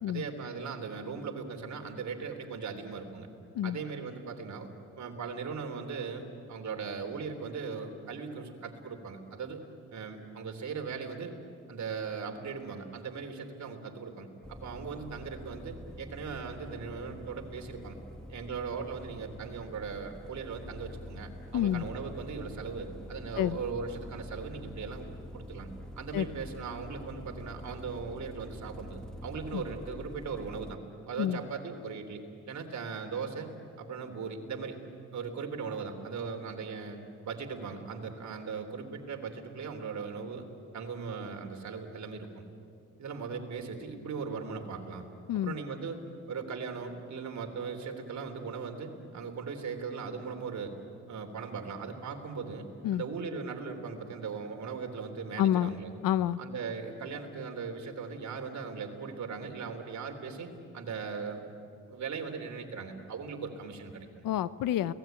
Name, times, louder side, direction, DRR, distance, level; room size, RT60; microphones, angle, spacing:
voice 1, 0.1-3.3 3.6-4.7 5.0-9.6 9.9-11.3 11.7-18.0 18.3-25.1 25.3-25.7 26.0-30.8 31.1-32.2 32.5-33.5 33.8-34.7 35.1-40.4 40.7-42.4 43.0-45.0 45.4-46.0 46.3-50.7 51.1-55.9 56.4-60.5 60.7-61.5 61.9-64.2, right 5 dB, 55° right, 4 dB, 3.4 m, -39 dB
sound 1, 14.4-30.8, left 1 dB, ahead, 1.1 m, -46 dB
voice 2, 21.5-21.8 23.4-23.6 26.1-26.3 29.5-29.6 31.2-31.4 45.3-45.6 52.8-53.0 55.4-55.7 56.0-56.4 64.2-64.9, left 11 dB, 85° left, 16 dB, 0.8 m, -28 dB
30.0 x 18.5 x 9.2 m, 2.6 s
cardioid pair, 95°, 33 cm